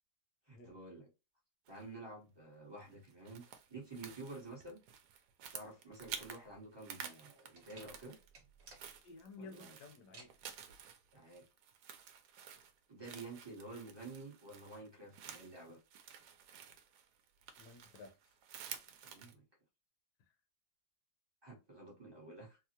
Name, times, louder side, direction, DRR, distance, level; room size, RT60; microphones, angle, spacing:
voice 1, 0.5-1.1 1.7-3.4 3.7-4.8 5.5-8.2 9.4-9.8 11.1-11.4 12.9-15.8 19.0-19.4 21.4-22.6, right 2 dB, 25° right, 0.6 m, -50 dB
sound 1, 1.7-2.0 2.8-6.4 6.7-8.3 8.6-19.3, right 8 dB, 70° right, 1.0 m, -52 dB
sound 2, 5.9-13.5, right 3 dB, 45° right, 1.0 m, -62 dB
voice 2, 9.0-10.3 17.6-18.1, left 3 dB, 65° left, 1.3 m, -53 dB
3.6 x 2.0 x 2.8 m
omnidirectional pair, 2.0 m